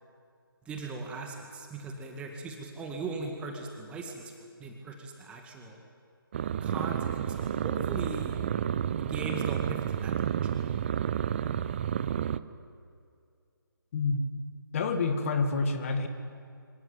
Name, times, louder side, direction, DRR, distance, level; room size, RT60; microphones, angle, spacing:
voice 1, 0.7-4.3 4.6-5.8 6.6-8.4 9.0-10.6, right 3 dB, 10° right, 2 dB, 1.8 m, -39 dB
sound 1, 6.3-12.4, right 9 dB, 30° right, 0.6 m, -30 dB
voice 2, 14.7-16.1, left 4 dB, 35° left, 6 dB, 2.2 m, -28 dB
25.0 x 16.0 x 9.5 m, 2.3 s
figure-of-eight pair, 150°, 12 cm